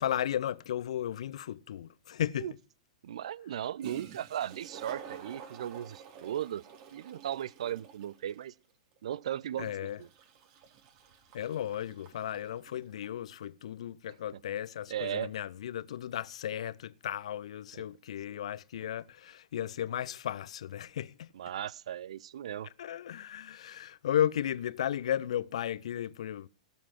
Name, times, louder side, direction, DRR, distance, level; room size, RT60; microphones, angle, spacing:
voice 1, 0.0-2.5 9.6-10.0 11.3-21.3 22.8-26.5, left 10 dB, 60° left, 0.7 m, -34 dB
voice 2, 3.0-6.6 6.9-8.5 9.0-9.7 10.0-10.1 14.3-14.4 14.9-15.3 17.7-17.8 21.3-22.7, right 10 dB, 60° right, 0.6 m, -37 dB
Toilet flush, 3.8-13.2, right 8 dB, 45° right, 3.5 m, -50 dB
17.0 x 7.2 x 5.8 m
figure-of-eight pair, 100°, 4 cm